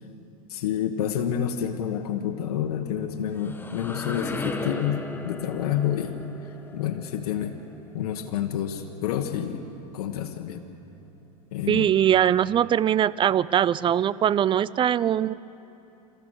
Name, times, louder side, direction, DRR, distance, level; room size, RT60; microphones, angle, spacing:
voice 1, 0.5-6.2 6.7-7.5 7.9-9.6 9.9-10.6 11.5-11.9, left 9 dB, 70° left, 4 dB, 1.5 m, -28 dB
sound 1, 3.1-8.8, left 2 dB, 10° left, 1.4 m, -37 dB
voice 2, 11.7-15.3, right 10 dB, 25° right, 19 dB, 0.5 m, -21 dB
28.0 x 14.5 x 6.6 m, 2.8 s
hypercardioid pair, 105°, 20 cm